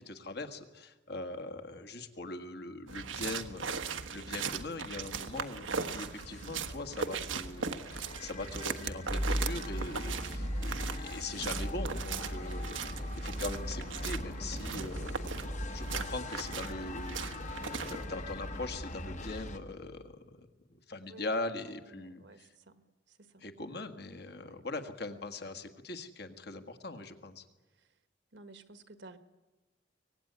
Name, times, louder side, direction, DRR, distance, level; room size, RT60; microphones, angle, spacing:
voice 1, 0.0-3.7 4.1-15.3 15.7-20.5 20.7-22.5 23.4-27.4, left 2 dB, 55° left, 7 dB, 1.8 m, -41 dB
sound 1, 2.9-18.0, right 5 dB, 85° right, 1.3 m, -39 dB
sound 2, 5.4-19.6, left 2 dB, 40° left, 1.3 m, -44 dB
sound 3, 9.1-20.0, equal, 5° left, 0.8 m, -39 dB
voice 2, 19.0-19.5 21.0-21.3 21.9-22.8 23.1-23.5 24.4-24.6 28.3-29.2, right 2 dB, 60° right, 10 dB, 1.5 m, -54 dB
24.0 x 18.5 x 9.6 m, 1.2 s
head